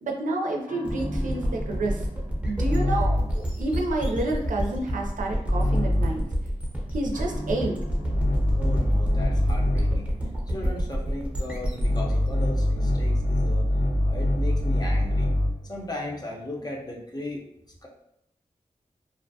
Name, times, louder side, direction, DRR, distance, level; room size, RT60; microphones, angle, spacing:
voice 1, 0.0-2.1 2.5-6.2 6.9-7.8, right 2 dB, 80° right, 1 dB, 0.4 m, -29 dB
sound 1, 0.7-3.4 5.5-6.3 7.1-10.1 11.8-15.7, left 1 dB, 70° left, 0.8 m, -25 dB
sound 2, 0.8-13.5, equal, 10° right, 0.7 m, -29 dB
voice 2, 8.6-10.1 10.5-13.7 14.1-15.3 15.6-17.5 17.8-17.9, left 1 dB, 30° left, -2 dB, 0.7 m, -36 dB
2.4 x 2.1 x 2.6 m, 0.77 s
cardioid pair, 50°, 13 cm